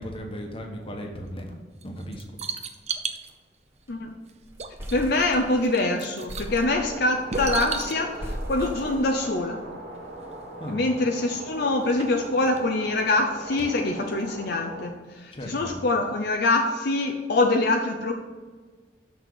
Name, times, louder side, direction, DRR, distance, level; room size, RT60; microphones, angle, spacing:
voice 1, 0.0-1.6 1.8-2.2 10.6-10.8 15.3-15.7, equal, 30° left, 2 dB, 1.4 m, -36 dB
sound 1, 1.8-3.3 4.3-4.4 4.6-5.2 5.5-6.6 7.3-8.0 9.9-10.0 10.3-10.4 11.1-11.2 11.7-12.6 13.6-13.7 14.1-14.2, right 5 dB, 40° right, 0.6 m, -34 dB
sound 2, 2.8-3.0 3.3-3.4 3.7-4.1 4.4-5.8 6.3-9.6, equal, 15° right, 1.3 m, -37 dB
voice 2, 4.9-9.6 10.7-18.1, left 2 dB, 60° left, 3 dB, 0.7 m, -24 dB
sound 3, 6.5-14.9, right 1 dB, 70° right, 2.4 m, -40 dB
6.4 x 6.3 x 6.9 m, 1.4 s
head